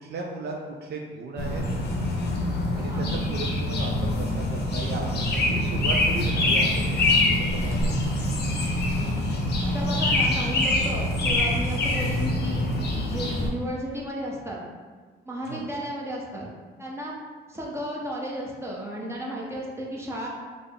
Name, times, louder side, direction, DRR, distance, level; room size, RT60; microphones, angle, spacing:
voice 1, 0.0-0.6 0.8-1.6 2.8-8.3 15.5-15.6, right 3 dB, 55° right, 0 dB, 0.4 m, -36 dB
sound 1, 1.4-13.5, left 1 dB, 55° left, 0.6 m, -25 dB
voice 2, 8.7-9.1 9.6-12.7 12.9-14.6 15.2-16.5 16.8-17.2 17.5-20.3, equal, 15° right, -4 dB, 0.7 m, -34 dB
3.5 x 2.0 x 3.5 m, 1.5 s
cardioid pair, 90°, 20 cm